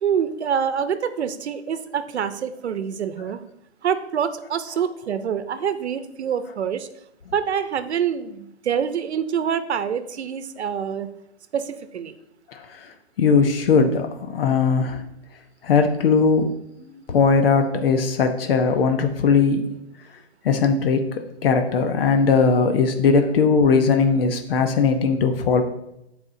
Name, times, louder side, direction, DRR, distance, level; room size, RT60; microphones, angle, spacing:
voice 1, 0.0-3.4 3.8-6.9 7.3-11.1 11.5-12.2, right 8 dB, 80° right, 11 dB, 0.8 m, -26 dB
voice 2, 12.5-12.9 13.2-15.0 15.6-16.5 17.1-19.6 20.4-21.0 21.4-25.6, left 5 dB, 60° left, 6 dB, 1.1 m, -19 dB
13.5 x 4.8 x 2.7 m, 0.83 s
hypercardioid pair, 155°, 33 cm